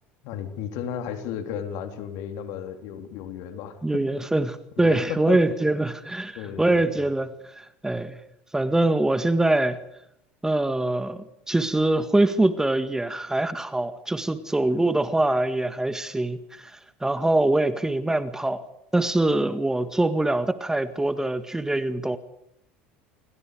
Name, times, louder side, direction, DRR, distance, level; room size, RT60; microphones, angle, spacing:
voice 1, 0.2-4.0 4.8-5.4 6.4-7.0, left 9 dB, 65° left, 3.6 m, -34 dB
voice 2, 3.8-8.2 8.5-9.8 10.4-16.7 17.0-18.6 18.9-22.2, right 2 dB, 10° right, 1.8 m, -24 dB
28.0 x 23.5 x 5.1 m
hypercardioid pair, 80°, 6 cm